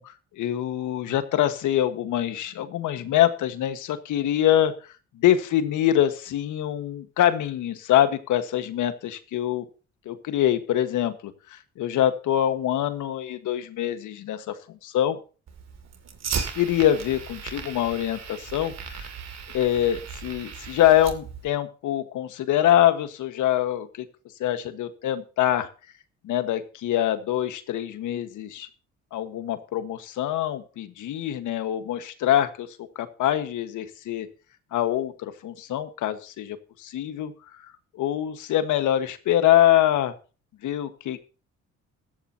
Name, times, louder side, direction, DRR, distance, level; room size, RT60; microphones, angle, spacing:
voice 1, 0.0-4.7 5.1-9.6 10.0-15.2 16.5-19.1 19.5-24.1 24.4-25.7 26.2-28.7 29.1-34.3 34.7-40.1 40.6-41.2, left 12 dB, 80° left, 10 dB, 1.5 m, -24 dB
Fire, 15.5-21.5, right 6 dB, 60° right, 2.5 m, -36 dB
15.0 x 14.0 x 2.9 m, 0.34 s
cardioid pair, 90°, 30 cm